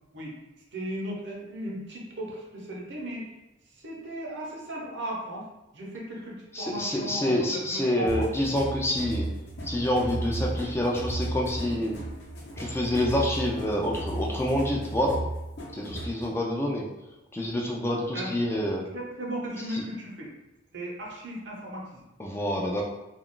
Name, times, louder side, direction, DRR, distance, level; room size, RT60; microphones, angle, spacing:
voice 1, 0.7-3.3 3.7-5.5 5.7-8.3 11.7-11.8 18.1-18.3 18.9-20.3 20.7-22.0, right 1 dB, 65° right, -3 dB, 0.8 m, -36 dB
voice 2, 6.5-9.3 9.6-12.0 12.6-15.2 15.7-16.8 17.3-18.9 19.7-19.8 22.2-22.8, left 1 dB, 15° left, -2 dB, 0.3 m, -27 dB
sound 1, 8.1-16.3, right 2 dB, 60° left, 0.7 m, -34 dB
2.3 x 2.3 x 3.6 m, 0.99 s
head